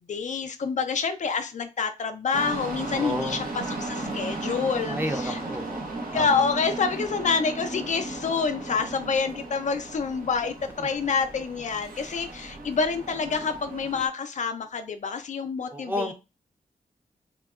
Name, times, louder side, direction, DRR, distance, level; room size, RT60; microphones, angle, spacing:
voice 1, 0.1-5.4 6.1-16.1, left 5 dB, 55° left, 8 dB, 0.4 m, -27 dB
sound 1, 2.3-14.1, right 2 dB, 70° right, 0.8 m, -36 dB
voice 2, 2.9-3.4 4.9-5.9 6.1-6.3 15.7-16.1, equal, 15° right, 5 dB, 0.6 m, -31 dB
3.5 x 2.2 x 2.3 m, 0.27 s
cardioid pair, 75°, 15 cm